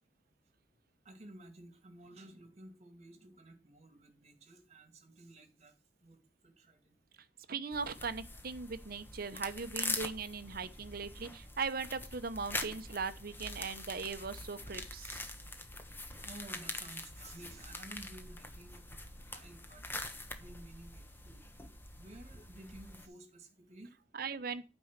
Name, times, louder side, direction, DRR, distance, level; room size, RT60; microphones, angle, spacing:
voice 1, 1.0-7.0 16.2-21.4 22.0-24.0, right 1 dB, 40° right, 2.2 m, -54 dB
voice 2, 7.5-15.2 24.1-24.7, right 5 dB, 55° right, 0.9 m, -39 dB
sound 1, 7.7-23.1, left 2 dB, 15° left, 1.3 m, -44 dB
9.2 x 5.4 x 7.3 m
head